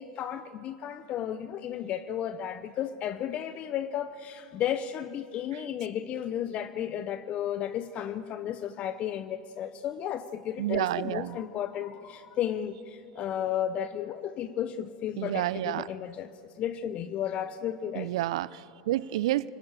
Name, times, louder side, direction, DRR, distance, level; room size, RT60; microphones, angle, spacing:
voice 1, 0.0-18.1, left 10 dB, 40° left, 0.8 m, -33 dB
voice 2, 10.6-11.4 15.2-15.9 17.9-19.5, right 15 dB, 65° right, 0.5 m, -30 dB
26.0 x 18.0 x 8.8 m
hypercardioid pair, 90°, 3 cm